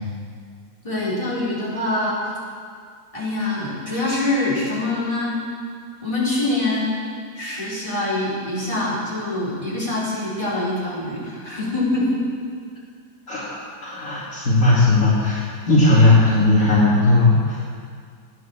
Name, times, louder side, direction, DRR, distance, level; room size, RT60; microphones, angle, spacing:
voice 1, 0.8-2.2 3.1-5.5 6.0-6.9 7.3-12.2, left 2 dB, 20° left, -8 dB, 4.5 m, -24 dB
voice 2, 13.3-17.6, left 2 dB, 55° left, -7 dB, 2.7 m, -17 dB
16.0 x 9.5 x 7.5 m, 2.1 s
omnidirectional pair, 1.8 m